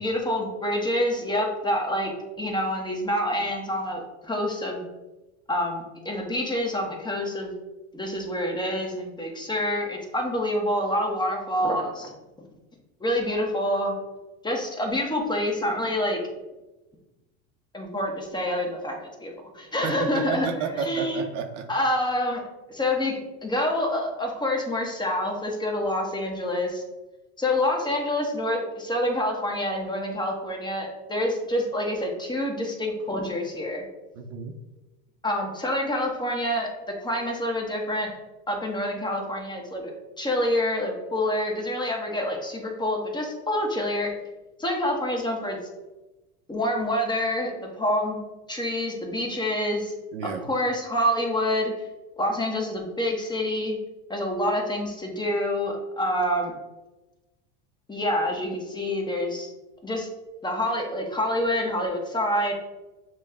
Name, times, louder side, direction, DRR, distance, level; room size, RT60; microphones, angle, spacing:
voice 1, 0.0-2.1 2.4-4.8 5.5-7.5 7.9-12.1 13.0-13.9 14.4-16.2 17.7-20.5 20.9-21.2 21.7-22.4 22.7-26.8 27.4-33.8 35.2-36.7 37.0-38.1 38.5-39.9 40.2-44.1 44.6-45.6 46.5-48.2 48.5-49.9 50.2-51.7 52.2-53.8 54.1-56.5 57.9-59.5 59.8-60.1 60.4-62.5, left 1 dB, 10° left, 0 dB, 1.1 m, -27 dB
voice 2, 19.8-21.7 34.1-34.6 50.1-50.5, right 6 dB, 80° right, 5 dB, 0.7 m, -31 dB
6.3 x 2.2 x 3.6 m, 1.0 s
supercardioid pair, 105°, 36 cm